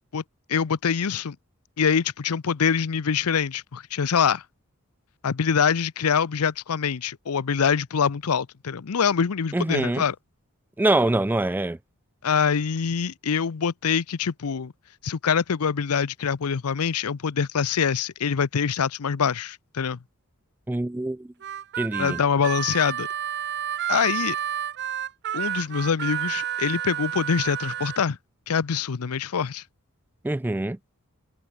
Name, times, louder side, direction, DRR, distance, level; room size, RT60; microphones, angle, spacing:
voice 1, 0.5-1.4 1.8-4.4 5.2-10.1 12.2-14.7 15.0-20.0 22.0-23.1 23.9-24.4 25.3-28.2 28.5-29.6, left 6 dB, 90° left, 0.6 m, -24 dB
voice 2, 9.5-10.0 10.8-11.8 20.7-21.3 21.8-22.2 30.2-30.8, right 2 dB, 10° right, 0.3 m, -24 dB
Harmonica, 21.4-28.0, right 10 dB, 50° right, 0.8 m, -30 dB
head